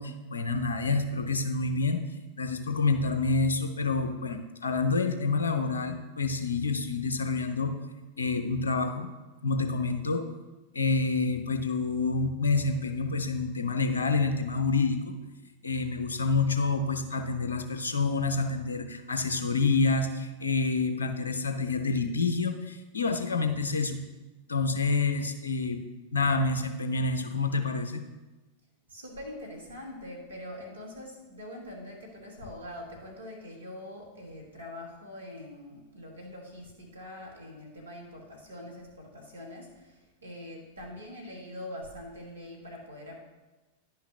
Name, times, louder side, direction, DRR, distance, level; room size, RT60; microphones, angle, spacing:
voice 1, 0.0-2.0 2.4-7.7 8.2-9.1 9.4-10.2 10.7-15.2 15.6-24.0 24.5-25.8 26.1-28.0, left 3 dB, 75° left, 7 dB, 0.6 m, -28 dB
voice 2, 28.9-43.2, left 1 dB, 80° right, -1 dB, 1.6 m, -43 dB
10.5 x 5.7 x 2.8 m, 1.1 s
figure-of-eight pair, 90°, 0 cm